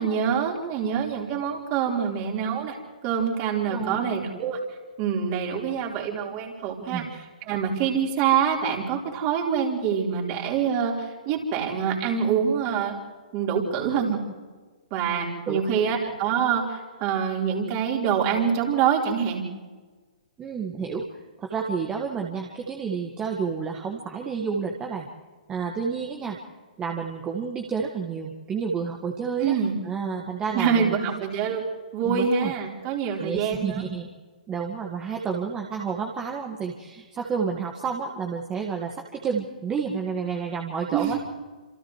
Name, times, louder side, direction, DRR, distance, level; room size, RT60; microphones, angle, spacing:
voice 1, 0.0-2.8 3.0-4.6 5.0-12.9 13.3-14.2 14.9-19.4 29.4-29.8 30.5-31.6 31.9-33.8 40.9-41.2, right 7 dB, 35° right, -1 dB, 4.2 m, -25 dB
voice 2, 3.7-4.1 6.9-7.1 15.5-15.8 20.4-21.1 21.4-25.1 25.5-26.4 26.8-29.5 29.8-31.0 32.0-32.5 33.2-34.1 34.5-41.2, right 6 dB, 20° right, 0 dB, 1.8 m, -30 dB
29.0 x 27.0 x 3.3 m, 1.3 s
figure-of-eight pair, 120°, 4 cm